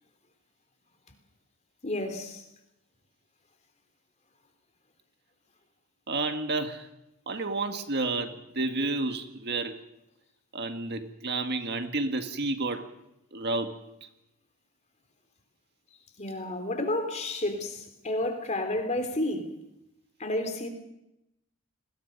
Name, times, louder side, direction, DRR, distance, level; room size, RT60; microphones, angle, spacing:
voice 1, 1.8-2.4 16.2-19.5 20.2-20.7, left 1 dB, 30° left, 3.4 m, -31 dB
voice 2, 6.1-6.9 7.3-9.8 10.5-12.9 13.3-13.8, right 2 dB, 50° right, 1.8 m, -30 dB
29.5 x 21.0 x 5.4 m
head